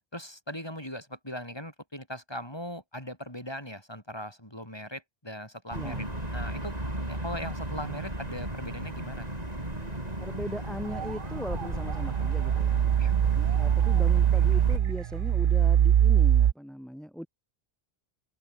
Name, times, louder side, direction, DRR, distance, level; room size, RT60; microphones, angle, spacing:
voice 1, 0.1-6.0 6.3-6.8 7.1-9.4 13.0-13.1, equal, 25° left, 7.9 m, -39 dB
voice 2, 5.7-6.1 10.2-12.9 13.3-17.3, equal, ahead, 3.8 m, -39 dB
sound 1, 5.7-14.8, right 1 dB, 40° right, 6.2 m, -35 dB
sound 2, 10.9-11.2 11.5-16.5, right 10 dB, 60° right, 0.8 m, -23 dB
open air
omnidirectional pair, 1.0 m